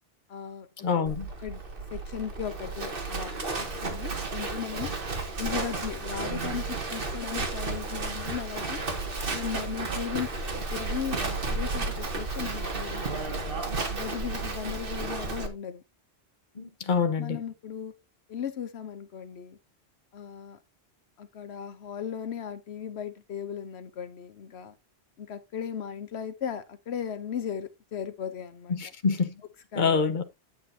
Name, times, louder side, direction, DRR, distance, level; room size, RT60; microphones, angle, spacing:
voice 1, 0.3-1.6 1.9-4.9 5.4-8.8 9.3-10.3 10.7-13.3 13.9-15.8 17.2-17.9 18.3-19.6 20.1-20.6 21.2-24.7 25.2-28.8 29.7-30.2, left 8 dB, 75° left, 1.1 m, -37 dB
voice 2, 0.8-1.3 16.6-17.4 28.7-29.3 29.8-30.2, left 5 dB, 50° left, 1.2 m, -26 dB
Livestock farm animals working animals, 1.1-15.5, right 3 dB, 55° right, 1.8 m, -33 dB
8.8 x 8.2 x 2.7 m
omnidirectional pair, 1.1 m